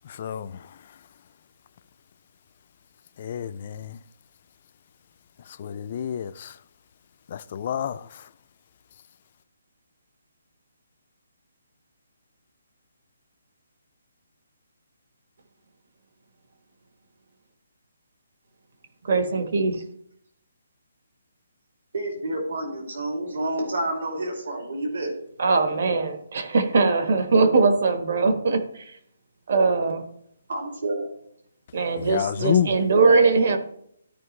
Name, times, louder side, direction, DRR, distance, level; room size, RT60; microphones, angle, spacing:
voice 1, 0.1-0.7 3.2-4.0 5.6-6.6 7.3-8.2 32.0-32.7, left 9 dB, 35° left, 0.3 m, -28 dB
voice 2, 19.0-19.8 25.4-28.8 29.5-30.0 31.7-33.6, right 4 dB, 50° right, 1.3 m, -21 dB
voice 3, 21.9-25.2 30.5-31.1, right 1 dB, 70° right, 2.6 m, -29 dB
13.5 x 5.2 x 3.2 m
hypercardioid pair, 175°, 0 cm